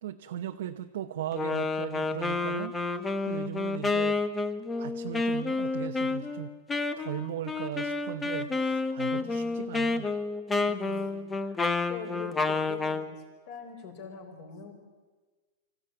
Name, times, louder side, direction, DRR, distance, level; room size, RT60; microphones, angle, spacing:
voice 1, 0.0-4.2 4.7-6.5 7.0-10.1, right 11 dB, 65° right, 5 dB, 0.9 m, -38 dB
Wind instrument woodwind instrument, 1.3-13.1, left 3 dB, 10° left, 0.8 m, -30 dB
voice 2, 8.2-8.6 9.1-9.5 10.7-13.2 13.5-14.7, left 6 dB, 40° left, 3 dB, 4.6 m, -44 dB
25.5 x 15.0 x 9.0 m, 1.4 s
supercardioid pair, 165°, 0 cm